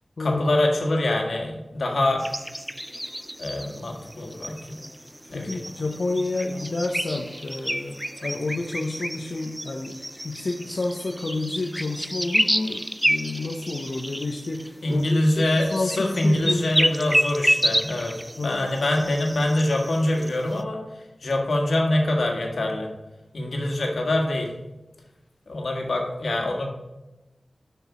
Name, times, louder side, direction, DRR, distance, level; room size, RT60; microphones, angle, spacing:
voice 1, 0.2-2.2 3.4-4.8 5.3-5.6 14.8-18.1 18.4-20.8 21.2-22.9 23.3-24.5 25.5-26.7, left 1 dB, 85° left, 0 dB, 1.6 m, -24 dB
sound 1, 2.2-20.6, equal, 5° right, 0.4 m, -30 dB
voice 2, 5.3-10.0 10.2-16.7 18.4-18.7, left 2 dB, 70° left, 1 dB, 0.7 m, -30 dB
6.9 x 5.9 x 4.8 m, 1.1 s
wide cardioid pair, 75°, 0 cm